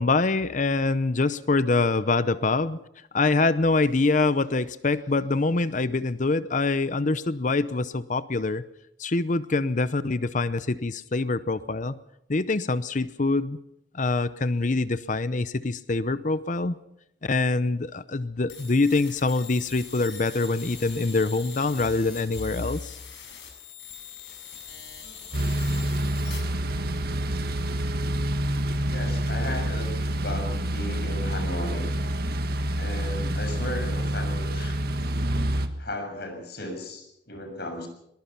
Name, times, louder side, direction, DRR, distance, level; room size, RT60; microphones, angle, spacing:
voice 1, 0.0-2.8 3.1-8.6 9.0-11.9 12.3-13.6 13.9-16.8 17.2-23.0, left 3 dB, 45° left, 15 dB, 0.7 m, -25 dB
sound 1, 18.5-26.4, left 7 dB, 85° left, 6.9 m, -43 dB
sound 2, 25.3-35.7, right 1 dB, 60° right, 1.7 m, -27 dB
voice 2, 28.9-29.9 30.2-31.8 32.8-34.8 35.8-37.9, left 1 dB, 60° left, 4 dB, 7.0 m, -35 dB
22.5 x 20.5 x 5.9 m, 0.78 s
head